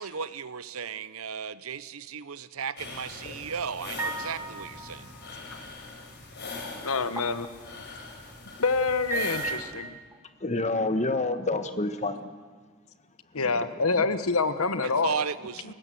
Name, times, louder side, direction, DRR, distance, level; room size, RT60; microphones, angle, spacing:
voice 1, 0.0-5.1 14.8-15.7, right 6 dB, 70° right, 16 dB, 0.8 m, -35 dB
sound 1, 2.8-9.6, left 3 dB, 50° left, 5.2 m, -42 dB
sound 2, 4.0-5.4 7.2-7.5 8.1-8.3 9.1-10.2, right 4 dB, 15° right, 1.7 m, -35 dB
voice 2, 6.8-7.5 8.6-10.0 13.3-15.1 15.6-15.7, left 4 dB, 70° left, 12 dB, 1.2 m, -26 dB
voice 3, 10.4-12.3 13.4-13.7 14.0-14.1, left 2 dB, 30° left, 9 dB, 1.4 m, -28 dB
30.0 x 17.0 x 7.8 m, 1.5 s
head